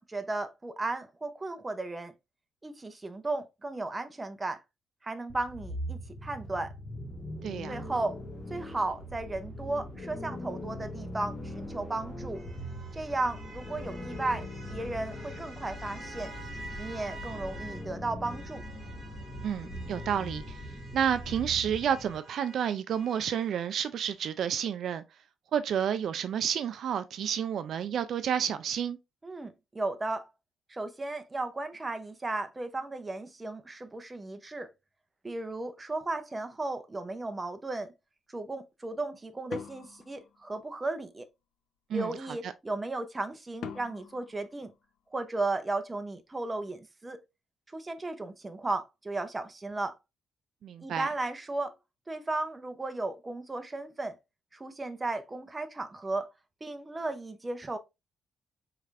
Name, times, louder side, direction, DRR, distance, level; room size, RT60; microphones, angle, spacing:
voice 1, 0.0-2.1 2.6-4.6 5.0-6.7 7.7-8.2 8.5-12.4 12.9-16.3 16.8-18.6 29.2-30.3 30.7-34.7 35.2-37.9 38.3-41.3 41.9-44.7 45.1-47.2 47.7-50.0 50.8-51.7 52.1-54.2 54.5-56.3 56.6-57.8, right 2 dB, 15° right, 0.6 m, -35 dB
sound 1, 5.3-22.2, left 1 dB, 25° left, 1.1 m, -41 dB
voice 2, 7.4-7.8 19.4-20.6 20.9-25.0 25.5-29.0 41.9-42.1 42.4-42.5 50.6-51.1, right 8 dB, 65° right, 0.3 m, -30 dB
sound 2, 11.3-17.9 18.2-23.6, right 3 dB, 35° right, 2.6 m, -49 dB
sound 3, 39.5-41.0 43.6-45.4, left 7 dB, 85° left, 0.6 m, -45 dB
4.8 x 3.3 x 2.4 m
cardioid pair, 130°, 0 cm